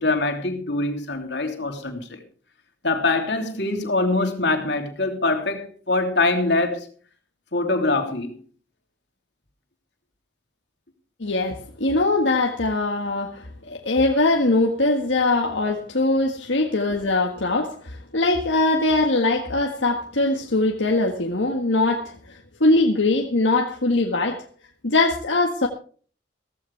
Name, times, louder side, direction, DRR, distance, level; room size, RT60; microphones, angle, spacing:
voice 1, 0.0-2.2 2.8-6.9 7.5-8.3, left 2 dB, 70° left, 3.2 m, -23 dB
voice 2, 11.2-24.4 24.8-25.7, left 2 dB, 90° left, 1.7 m, -22 dB
16.0 x 15.0 x 3.4 m
head